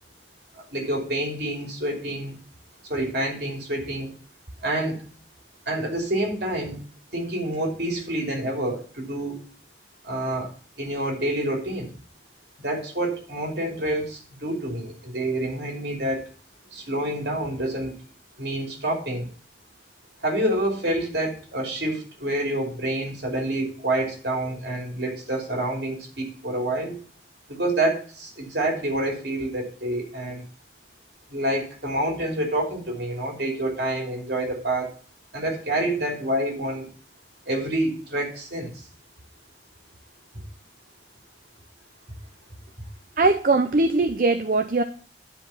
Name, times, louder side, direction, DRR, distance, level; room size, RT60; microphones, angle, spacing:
voice 1, 0.5-2.3 2.9-4.1 4.6-5.0 5.7-6.8 7.1-9.4 10.0-10.5 10.8-11.9 12.6-16.2 16.7-18.0 18.4-19.3 20.2-27.0 27.5-30.4 31.3-35.0 35.3-36.9 37.5-38.7, right 1 dB, 65° right, 1 dB, 3.0 m, -27 dB
voice 2, 43.2-44.8, right 3 dB, 50° right, 6 dB, 0.6 m, -20 dB
10.5 x 5.0 x 5.7 m, 0.41 s
head